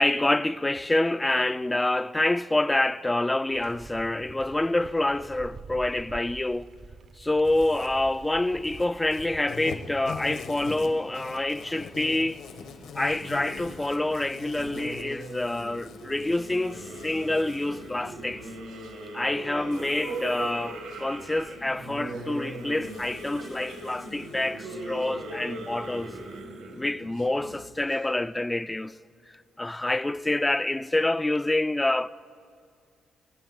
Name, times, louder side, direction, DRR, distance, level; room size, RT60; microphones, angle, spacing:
voice 1, 0.0-6.7 7.2-12.4 12.9-18.5 19.1-26.2 26.7-29.0 29.6-32.1, left 2 dB, 15° left, 0.3 m, -27 dB
sound 1, 3.5-9.4, right 4 dB, 45° right, 0.6 m, -46 dB
Insect, 7.4-26.4, left 5 dB, 85° left, 1.7 m, -45 dB
sound 2, 13.0-27.9, right 2 dB, 80° right, 2.0 m, -40 dB
21.5 x 8.9 x 6.1 m
cardioid pair, 90°, 0 cm